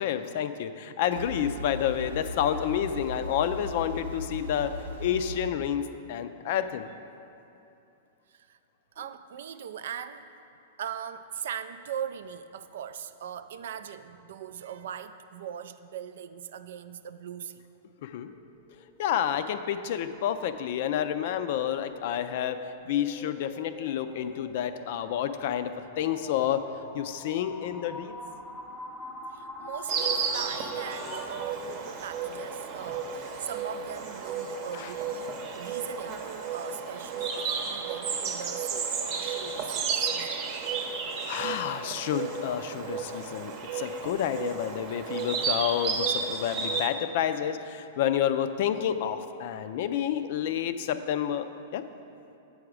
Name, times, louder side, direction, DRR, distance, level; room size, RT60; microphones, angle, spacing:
voice 1, 0.0-5.8 6.1-6.9 18.0-18.3 19.0-22.6 22.9-26.7 26.9-28.2 34.7-34.9 41.3-51.8, left 10 dB, 60° left, 11 dB, 0.4 m, -29 dB
sound 1, 1.1-5.5, equal, 90° right, 0.9 m, -38 dB
voice 2, 9.0-10.2 10.8-17.6 22.0-22.2 29.3-40.4 43.2-43.3, right 9 dB, 70° right, 11 dB, 0.3 m, -40 dB
sound 2, 18.3-31.5, left 2 dB, 15° left, 0.7 m, -45 dB
Insect, 29.9-46.9, right 5 dB, 45° right, 0.8 m, -33 dB
7.7 x 4.8 x 4.9 m, 2.7 s
hypercardioid pair, 110°, 0 cm